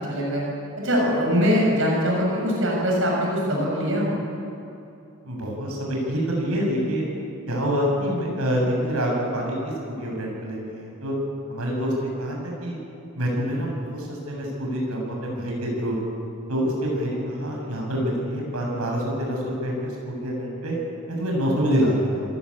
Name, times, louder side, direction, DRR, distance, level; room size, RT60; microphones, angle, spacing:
voice 1, 0.1-0.4 0.8-4.1, equal, 60° right, -2 dB, 7.3 m, -22 dB
voice 2, 5.2-7.0 7.5-11.1 11.5-12.8 13.1-16.0 16.5-20.8 21.1-22.2, equal, 90° right, -1 dB, 7.6 m, -26 dB
28.0 x 18.0 x 8.8 m, 2.8 s
head